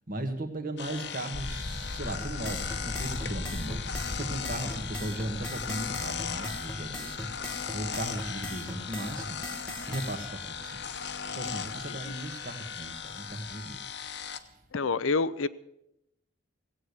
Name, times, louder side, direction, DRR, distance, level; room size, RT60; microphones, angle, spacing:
voice 1, 0.1-7.3 7.7-9.4 9.9-10.8 11.3-13.9 14.4-14.6, right 1 dB, 45° right, 1.6 m, -37 dB
sound 1, 0.8-14.4, left 7 dB, 55° left, 0.9 m, -38 dB
sound 2, 1.3-13.2 13.5-13.8 14.1-14.3, left 1 dB, 25° left, 0.6 m, -42 dB
sound 3, 2.2-10.1, equal, 5° left, 1.6 m, -40 dB
voice 2, 14.7-15.5, left 4 dB, 80° left, 0.5 m, -28 dB
17.0 x 8.5 x 8.1 m
head